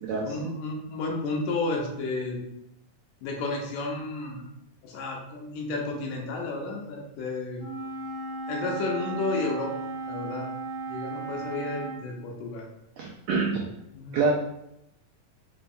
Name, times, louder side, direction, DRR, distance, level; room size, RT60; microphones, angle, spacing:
voice 1, 0.2-2.5 3.2-4.4 4.8-7.6 8.5-10.5 10.9-12.7 13.9-14.3, left 3 dB, 80° left, 0 dB, 2.2 m, -32 dB
Wind instrument woodwind instrument, 7.6-12.0, right 3 dB, 65° right, 2.1 m, -35 dB
voice 2, 13.0-13.6 14.1-14.3, right 4 dB, 85° right, -2 dB, 1.5 m, -26 dB
5.3 x 4.4 x 2.3 m, 0.83 s
omnidirectional pair, 3.9 m